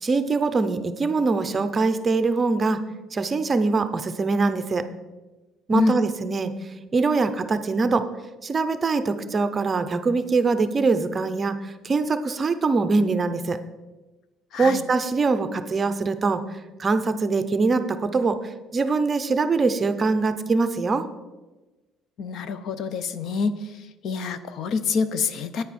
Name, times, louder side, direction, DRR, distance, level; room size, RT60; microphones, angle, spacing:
voice 1, 0.0-2.8 3.1-4.9 5.7-6.5 6.9-8.1 8.4-13.6 14.6-16.4 16.8-18.4 18.7-21.1, right 4 dB, 25° right, 11 dB, 0.6 m, -23 dB
voice 2, 14.5-14.8 22.2-23.6 24.0-25.6, left 5 dB, 60° left, 13 dB, 0.6 m, -26 dB
10.0 x 9.2 x 4.2 m, 1.1 s
cardioid pair, 135°, 0 cm